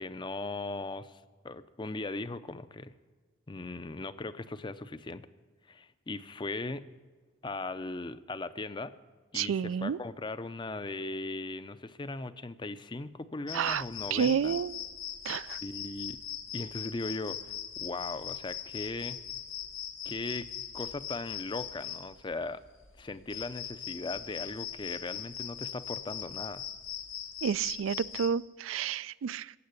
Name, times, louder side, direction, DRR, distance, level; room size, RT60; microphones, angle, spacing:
voice 1, 0.0-2.9 3.5-5.3 5.7-6.9 7.4-8.9 9.3-14.6 15.4-16.2 16.5-19.2 20.0-20.5 20.7-22.6 23.0-26.7, left 3 dB, 25° left, 14 dB, 0.5 m, -38 dB
voice 2, 9.3-10.0 13.5-13.8 14.1-14.8 15.3-15.6 27.4-29.5, right 7 dB, 75° right, 20 dB, 0.3 m, -30 dB
sound 1, 13.5-28.3, left 9 dB, 85° left, 1.6 m, -40 dB
15.5 x 8.6 x 8.2 m, 1.4 s
head